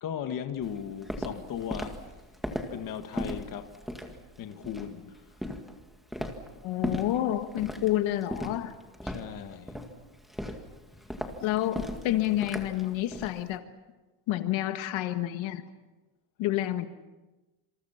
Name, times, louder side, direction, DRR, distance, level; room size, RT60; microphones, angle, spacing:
voice 1, 0.0-2.0 2.7-3.7 4.4-5.2 9.0-9.8, left 8 dB, 45° left, 1.7 m, -37 dB
Walk footsteps, 0.6-13.4, equal, ahead, 2.0 m, -38 dB
voice 2, 6.6-8.7 11.4-13.6 14.3-15.6 16.4-16.9, left 13 dB, 80° left, 1.7 m, -29 dB
27.5 x 27.5 x 5.8 m
cardioid pair, 175°, 46 cm